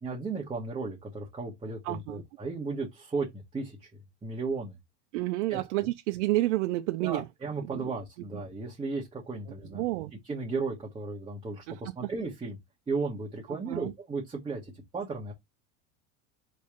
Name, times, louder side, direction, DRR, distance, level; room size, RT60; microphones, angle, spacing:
voice 1, 0.0-3.9 4.2-4.7 5.5-5.6 7.0-9.8 10.2-12.6 12.9-15.3, right 4 dB, 15° right, 1.2 m, -35 dB
voice 2, 1.8-2.2 5.1-7.3 7.7-7.9 9.7-10.1 11.7-12.1 13.7-13.9, right 17 dB, 80° right, 0.6 m, -30 dB
4.0 x 3.2 x 3.6 m
supercardioid pair, 135°, 35 cm